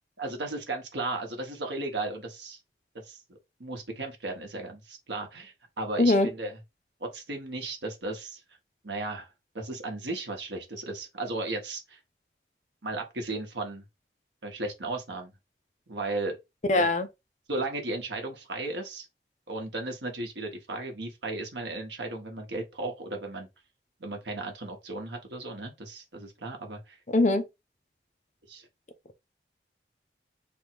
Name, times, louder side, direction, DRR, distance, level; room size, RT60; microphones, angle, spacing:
voice 1, 0.2-2.6 3.0-6.6 7.0-8.4 8.8-9.3 9.5-12.0 12.8-13.8 14.4-15.3 15.9-16.4 16.8-16.9 17.5-19.1 19.5-23.5 24.0-27.0 28.5-28.7, right 2 dB, 90° right, 1.2 m, -35 dB
voice 2, 6.0-6.3 16.7-17.1 27.1-27.4, left 2 dB, 40° left, 0.6 m, -22 dB
3.5 x 2.3 x 4.5 m
head